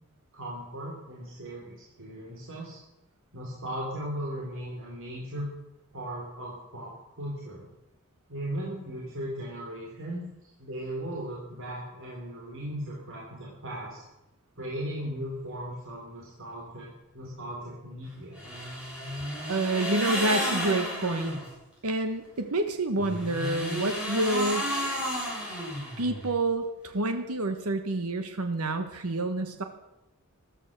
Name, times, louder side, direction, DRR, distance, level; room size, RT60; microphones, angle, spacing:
voice 1, 0.3-2.8 3.3-5.5 5.9-7.6 8.3-10.2 10.6-14.0 14.6-18.4, right 1 dB, 60° right, -4 dB, 3.9 m, -37 dB
sound 1, 18.4-21.5 22.9-26.3, equal, 5° right, 7.2 m, -32 dB
voice 2, 19.5-21.4 21.8-24.7 26.0-29.6, right 2 dB, 80° right, 7 dB, 1.3 m, -28 dB
14.5 x 13.0 x 6.8 m, 0.92 s
head